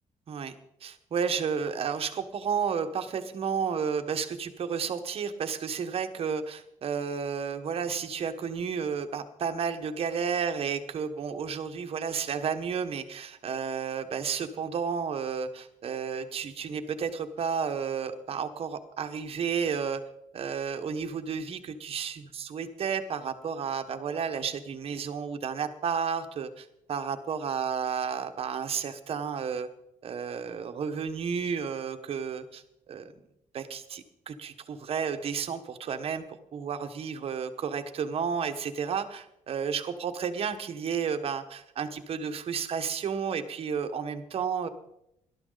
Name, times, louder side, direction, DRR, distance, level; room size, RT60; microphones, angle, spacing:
voice 1, 0.8-20.0 20.3-29.7 30.0-33.1 33.5-36.2 36.5-44.7, right 6 dB, 45° right, 8 dB, 1.2 m, -32 dB
19.0 x 12.5 x 4.0 m, 0.80 s
cardioid pair, 155°, 13 cm